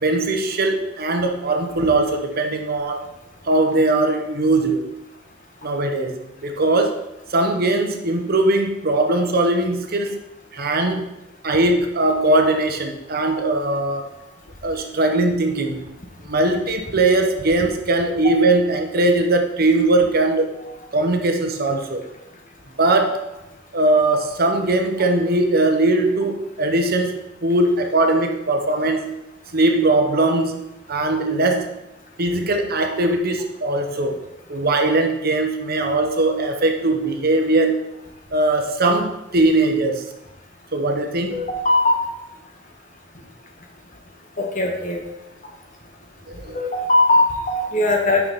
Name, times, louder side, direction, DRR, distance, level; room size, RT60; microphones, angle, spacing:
voice 1, 0.0-3.0 3.4-4.9 5.6-6.2 6.4-7.0 7.3-10.2 10.5-11.1 11.4-14.1 14.6-15.8 16.3-20.5 20.9-22.0 22.8-23.2 23.7-27.2 27.4-29.1 29.5-31.7 32.2-34.2 34.5-37.8 38.3-40.0 40.7-41.4 46.4-46.6, right 2 dB, 50° right, 4 dB, 1.0 m, -20 dB
voice 2, 41.3-42.0 44.4-45.0 46.5-48.2, left 2 dB, 45° left, 1 dB, 1.5 m, -19 dB
9.4 x 6.0 x 4.1 m, 0.91 s
head